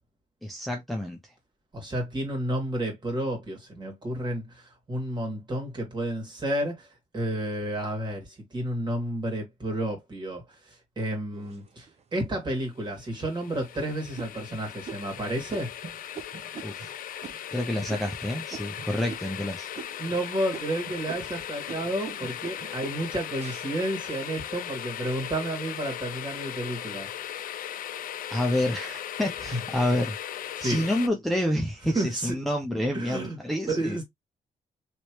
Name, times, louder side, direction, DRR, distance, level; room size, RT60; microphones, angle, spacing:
voice 1, 0.4-1.2 16.6-16.9 17.5-19.7 28.3-30.2 30.6-34.0, left 1 dB, ahead, 0.7 m, -28 dB
voice 2, 1.7-15.7 20.0-27.1 29.5-29.6 30.6-30.8 31.9-32.4 32.9-33.4 33.7-34.0, right 1 dB, 30° right, 2.0 m, -31 dB
sound 1, 11.3-12.2 12.8-12.9 13.4-13.7 14.2-19.5 19.7-20.2 20.5-24.8 25.3-25.9, right 6 dB, 45° right, 0.8 m, -44 dB
sound 2, 13.0-31.1, left 10 dB, 75° left, 0.4 m, -38 dB
3.1 x 3.1 x 3.0 m
cardioid pair, 125°, 14 cm